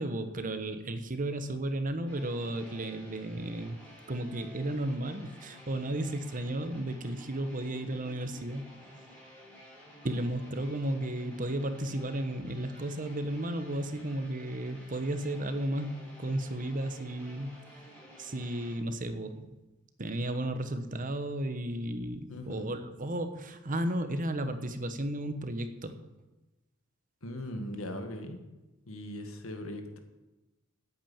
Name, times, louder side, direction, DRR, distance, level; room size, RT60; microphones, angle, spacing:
voice 1, 0.0-3.8 4.1-8.7 10.0-15.9 16.2-17.5 18.2-19.5 20.0-26.0, right 1 dB, 40° right, 9 dB, 1.0 m, -34 dB
sound 1, 2.1-18.8, equal, 5° left, 4.8 m, -53 dB
voice 2, 22.3-22.8 27.2-28.4 28.9-30.0, left 1 dB, 85° left, 6 dB, 1.8 m, -39 dB
8.8 x 8.6 x 8.8 m, 1.1 s
head